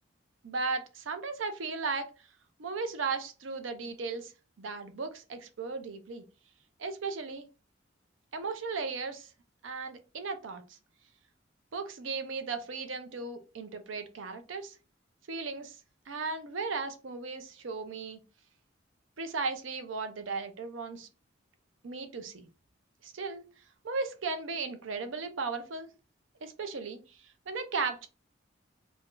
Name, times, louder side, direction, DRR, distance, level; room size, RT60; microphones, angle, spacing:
voice 1, 0.4-2.1 2.6-4.3 4.6-6.2 6.8-7.5 8.3-9.3 9.6-10.8 11.7-14.7 15.3-15.8 16.1-18.2 19.2-21.1 21.8-22.5 23.0-23.5 23.8-25.9 26.4-28.1, right 4 dB, 80° right, 0.6 m, -36 dB
2.6 x 2.3 x 3.6 m
head